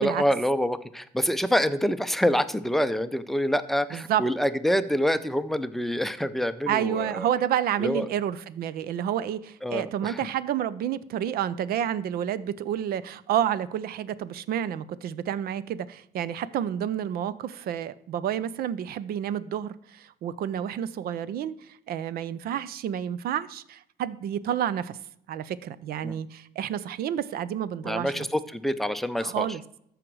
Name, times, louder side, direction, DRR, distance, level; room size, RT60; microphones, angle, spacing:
voice 1, 0.0-7.3 7.8-8.1 9.6-10.3 26.0-26.2 27.8-29.5, equal, ahead, 11 dB, 0.5 m, -26 dB
voice 2, 3.9-4.2 6.7-25.0 25.3-28.3 29.2-29.6, right 10 dB, 65° right, 17 dB, 0.5 m, -29 dB
13.5 x 5.0 x 4.7 m, 0.73 s
cardioid pair, 110°, 17 cm